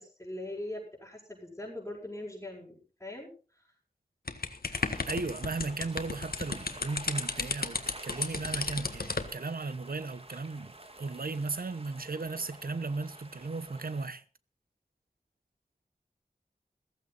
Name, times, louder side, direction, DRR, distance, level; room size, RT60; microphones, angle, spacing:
voice 1, 0.0-3.3, left 1 dB, 15° left, 6.7 m, -41 dB
sound 1, 4.3-9.3, left 4 dB, 70° left, 1.6 m, -34 dB
sound 2, 4.7-14.1, right 1 dB, 35° right, 2.4 m, -49 dB
voice 2, 4.7-10.7 11.0-14.2, right 3 dB, 65° right, 1.0 m, -36 dB
15.5 x 15.0 x 4.1 m
wide cardioid pair, 65°, 16 cm